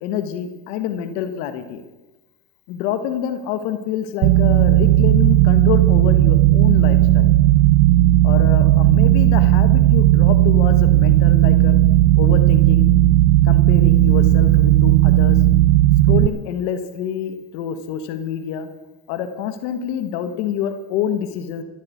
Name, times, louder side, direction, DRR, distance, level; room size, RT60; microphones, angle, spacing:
voice 1, 0.0-1.8 2.7-7.3 8.2-11.8 12.1-12.9 13.4-15.4 16.1-18.7 19.1-21.6, left 9 dB, 85° left, 9 dB, 1.4 m, -27 dB
sound 1, 4.2-16.3, right 15 dB, 70° right, 0.6 m, -14 dB
15.0 x 8.3 x 8.3 m, 1.1 s
supercardioid pair, 80°, 44 cm